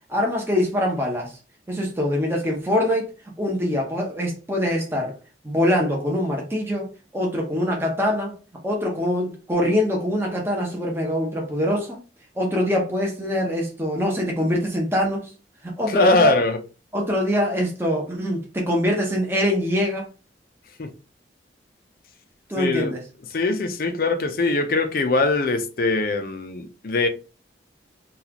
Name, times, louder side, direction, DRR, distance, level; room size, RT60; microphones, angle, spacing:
voice 1, 0.1-1.3 1.7-3.1 3.4-5.2 5.4-8.4 8.6-12.0 12.4-15.3 15.6-16.3 16.9-20.1 22.5-23.0, left 1 dB, 15° right, 0.8 m, -24 dB
voice 2, 15.9-16.6 20.8-20.9 22.6-22.9 23.3-27.1, left 3 dB, 50° left, 0.5 m, -21 dB
4.0 x 2.4 x 2.8 m
head